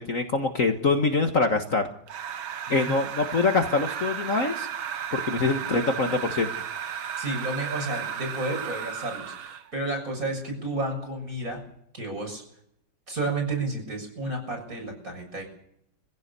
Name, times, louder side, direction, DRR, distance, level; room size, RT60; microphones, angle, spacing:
voice 1, 0.0-1.8 2.7-4.7 5.1-6.5, left 3 dB, 40° left, 5 dB, 1.8 m, -24 dB
sound 1, 2.1-9.7, right 8 dB, 80° right, 2.0 m, -34 dB
voice 2, 2.7-3.0 7.2-11.6 11.9-12.4 13.1-15.5, right 2 dB, 40° right, 3 dB, 7.3 m, -31 dB
24.0 x 16.0 x 6.9 m, 0.72 s
omnidirectional pair, 2.2 m